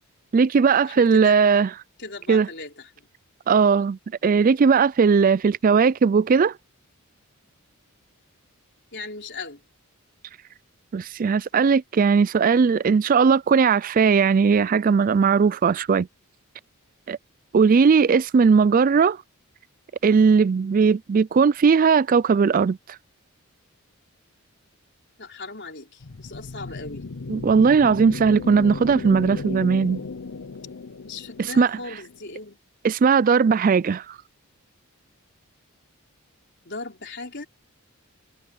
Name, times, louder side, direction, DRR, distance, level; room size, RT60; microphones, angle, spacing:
voice 1, 0.3-1.7 2.3-2.5 3.5-6.5 10.9-16.1 17.1-17.2 17.5-19.2 20.0-22.8 27.3-30.0 31.4-31.7 32.8-34.0, right 5 dB, 40° right, 0.3 m, -18 dB
voice 2, 0.8-1.4 2.0-2.9 8.9-9.6 25.2-27.0 31.0-32.6 36.6-37.5, left 3 dB, 50° left, 4.4 m, -37 dB
sound 1, 26.0-32.5, left 4 dB, 70° left, 0.8 m, -35 dB
head